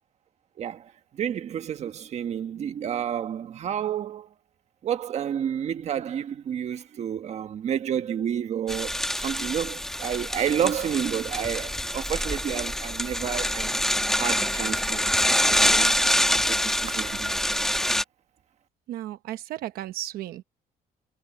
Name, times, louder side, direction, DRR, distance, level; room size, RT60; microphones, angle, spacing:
voice 1, 0.6-4.3 4.8-13.8 14.1-15.1 15.5-16.0 16.3-17.4, right 9 dB, 45° right, 1.4 m, -30 dB
sound 1, 8.7-18.0, left 1 dB, 5° left, 1.1 m, -25 dB
voice 2, 18.9-20.4, right 13 dB, 80° right, 0.9 m, -34 dB
cardioid pair, 155°, 15 cm